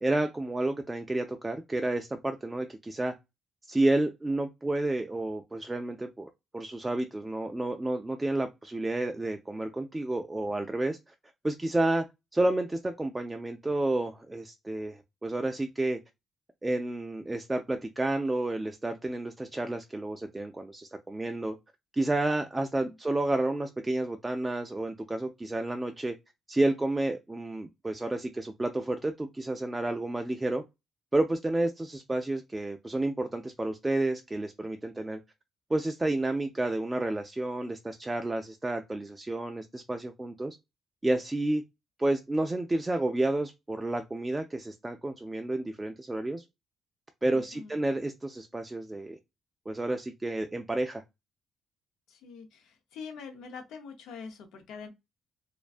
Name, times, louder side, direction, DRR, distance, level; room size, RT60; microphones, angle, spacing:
voice 1, 0.0-3.1 3.7-11.1 11.4-12.0 12.3-16.0 16.6-21.6 21.9-26.1 26.5-30.6 31.1-35.2 35.7-40.6 41.0-41.6 42.0-46.4 47.2-49.2 49.7-51.0, right 2 dB, 15° right, 0.3 m, -30 dB
voice 2, 47.3-47.8 52.1-54.9, left 5 dB, 85° left, 0.6 m, -44 dB
2.5 x 2.2 x 2.3 m
cardioid pair, 90°, 0 cm